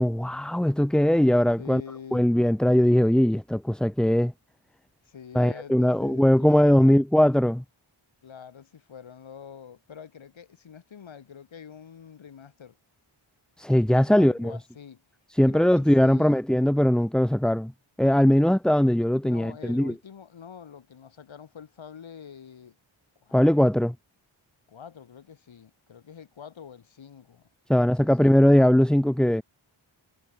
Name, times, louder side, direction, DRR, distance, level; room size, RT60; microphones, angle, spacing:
voice 1, 0.0-1.8 2.1-4.3 5.3-7.6 13.6-14.6 15.3-17.7 18.0-19.9 23.3-23.9 27.7-29.4, equal, ahead, 0.5 m, -20 dB
voice 2, 1.6-2.3 5.0-7.0 8.2-12.8 14.1-15.0 15.5-16.4 18.3-18.5 19.2-22.8 23.2-23.7 24.7-28.3, left 7 dB, 65° left, 3.4 m, -46 dB
cardioid pair, 65°, 49 cm